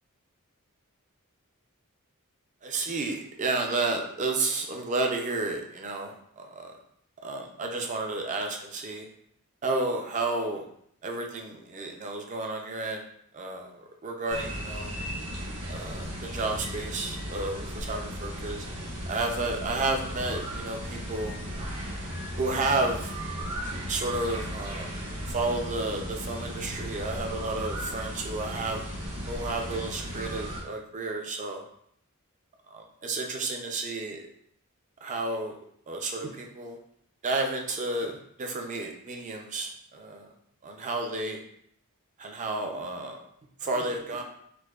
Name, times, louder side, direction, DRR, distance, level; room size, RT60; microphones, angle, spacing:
voice 1, 2.6-6.7 7.2-9.1 9.6-10.6 11.0-13.1 13.3-15.0 15.7-18.6 19.1-21.4 22.4-23.1 23.9-24.9 25.3-28.8 29.3-31.6 32.7-34.3 35.0-35.5 35.9-36.8 37.2-40.3 40.6-41.4 42.2-43.2 43.6-44.2, right 2 dB, 35° right, 3 dB, 0.4 m, -31 dB
sound 1, 14.3-30.6, equal, 80° right, 0.9 m, -36 dB
4.5 x 2.1 x 2.3 m, 0.69 s
head